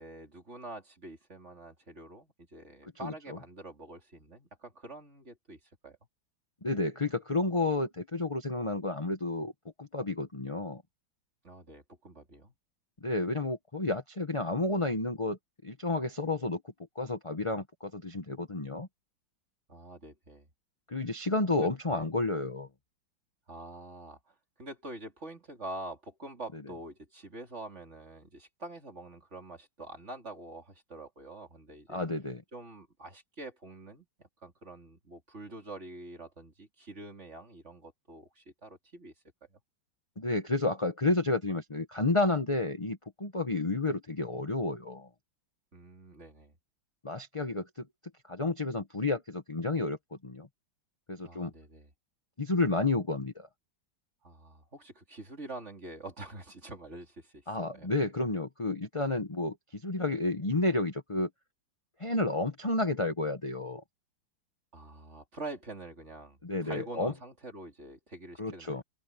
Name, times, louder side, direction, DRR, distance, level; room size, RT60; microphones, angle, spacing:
voice 1, 0.0-6.0 11.4-12.5 19.7-20.5 21.5-22.1 23.5-32.0 32.5-34.1 34.4-39.1 39.5-39.6 45.7-46.6 51.2-51.9 54.2-57.4 57.7-57.9 64.7-68.8, right 2 dB, 35° right, 3.7 m, -46 dB
voice 2, 3.0-3.4 6.6-9.5 9.8-10.8 13.0-16.6 16.9-18.9 20.9-22.7 31.9-32.4 40.2-45.1 47.0-47.8 48.3-50.0 50.2-50.5 51.1-51.5 52.4-53.5 57.5-61.3 62.0-63.8 66.4-67.1 68.4-68.8, left 2 dB, 20° left, 1.0 m, -31 dB
open air
omnidirectional pair, 2.2 m